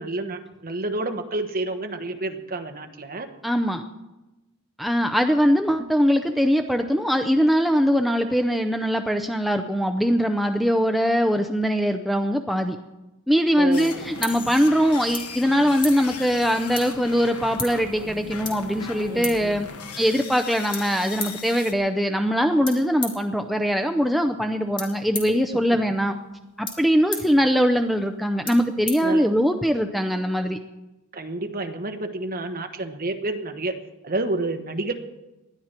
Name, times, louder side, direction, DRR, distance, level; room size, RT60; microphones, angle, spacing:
voice 1, 0.0-3.3 13.6-14.1 19.1-19.7 25.5-25.8 29.0-29.2 31.1-33.7 34.0-34.9, right 2 dB, 40° right, 7 dB, 1.2 m, -29 dB
voice 2, 3.4-3.8 4.8-12.8 13.3-19.7 20.0-26.1 26.6-30.6, equal, ahead, 5 dB, 0.5 m, -22 dB
sound 1, 13.5-29.7, left 3 dB, 20° left, 2.8 m, -39 dB
sound 2, 13.7-21.7, left 5 dB, 85° left, 1.3 m, -38 dB
20.0 x 12.0 x 4.4 m, 1.0 s
head